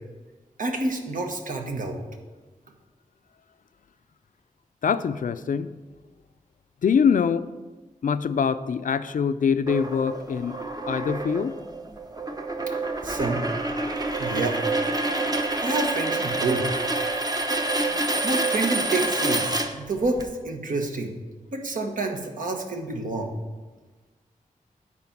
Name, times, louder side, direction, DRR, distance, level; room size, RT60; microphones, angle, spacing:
voice 1, 0.6-2.0 13.0-13.4 14.2-14.6 15.6-16.7 18.2-21.1 21.5-23.3, right 2 dB, 70° right, 3 dB, 1.3 m, -28 dB
voice 2, 4.8-5.7 6.8-7.5 8.0-10.6 10.9-11.6, left 6 dB, 70° left, 13 dB, 0.4 m, -24 dB
sound 1, 9.7-20.2, right 2 dB, 25° right, 0.8 m, -27 dB
9.7 x 4.3 x 7.3 m, 1.3 s
wide cardioid pair, 95°, 14 cm